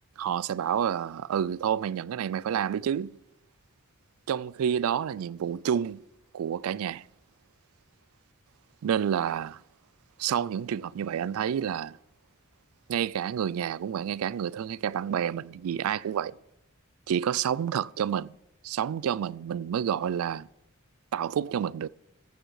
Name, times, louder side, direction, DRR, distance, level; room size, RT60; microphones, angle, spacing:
voice 1, 0.2-3.2 4.3-6.0 6.3-7.0 8.8-9.6 10.2-12.0 12.9-16.4 17.1-18.3 18.6-20.5 21.1-21.9, right 8 dB, 90° right, 0.3 m, -29 dB
15.0 x 9.0 x 4.8 m
head